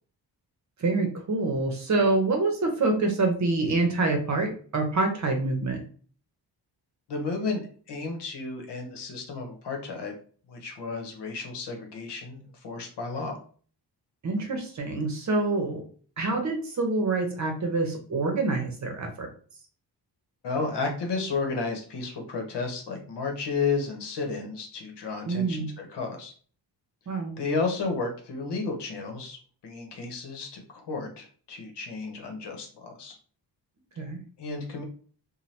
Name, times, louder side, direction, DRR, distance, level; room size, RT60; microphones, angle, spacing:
voice 1, 0.8-5.8 14.2-15.8 16.2-19.3 25.3-25.7 27.1-27.3 34.0-34.2, right 3 dB, 45° right, 3 dB, 0.8 m, -26 dB
voice 2, 7.1-10.2 10.5-13.4 20.4-26.3 27.4-29.4 29.6-33.2 34.4-34.8, left 4 dB, 75° left, 3 dB, 0.9 m, -32 dB
2.7 x 2.2 x 3.2 m, 0.43 s
wide cardioid pair, 115°, 42 cm